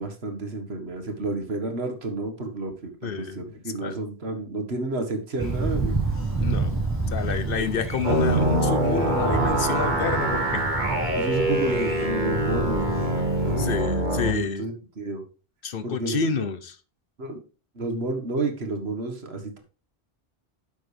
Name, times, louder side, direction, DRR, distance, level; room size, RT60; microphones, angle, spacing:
voice 1, 0.0-5.9 7.5-7.7 11.2-13.1 13.4-13.7 14.1-15.2 15.8-16.5 17.2-17.4 17.8-19.6, right 2 dB, 75° right, 1.9 m, -31 dB
voice 2, 3.0-3.4 3.8-4.0 6.4-6.8 7.1-10.7 13.6-14.7 15.6-16.7, left 5 dB, 60° left, 1.1 m, -29 dB
Thunder, 5.4-13.8, right 3 dB, 10° right, 4.4 m, -30 dB
sound 1, 8.0-14.3, right 1 dB, 50° right, 1.9 m, -24 dB
10.5 x 7.5 x 3.4 m
omnidirectional pair, 1.1 m